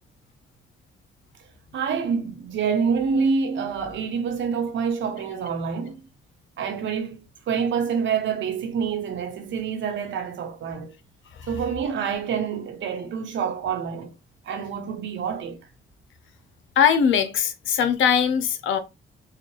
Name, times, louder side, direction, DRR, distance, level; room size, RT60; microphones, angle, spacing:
voice 1, 1.7-6.0 6.6-7.2 7.5-10.9 11.5-14.1 14.4-15.6, right 6 dB, 70° right, 1.1 m, -27 dB
voice 2, 16.8-18.8, left 8 dB, 80° left, 0.8 m, -20 dB
4.9 x 2.4 x 3.1 m
cardioid pair, 90°, 20 cm